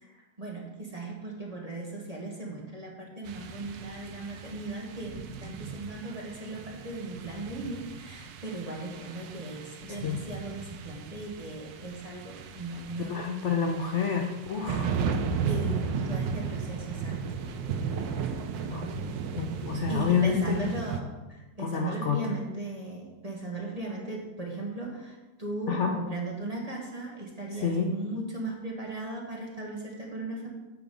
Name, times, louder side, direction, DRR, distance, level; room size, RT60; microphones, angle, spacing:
voice 1, 0.0-13.1 15.4-17.4 19.9-30.5, right 2 dB, 25° right, -2 dB, 1.2 m, -37 dB
sound 1, 3.3-21.0, right 6 dB, 85° right, 1.3 m, -35 dB
voice 2, 9.9-10.2 13.1-14.9 18.5-19.1 19.4-20.7 21.6-22.2 25.7-26.0 27.5-27.9, left 6 dB, 60° left, 3 dB, 0.8 m, -28 dB
8.2 x 4.9 x 5.4 m, 1.1 s
omnidirectional pair, 1.9 m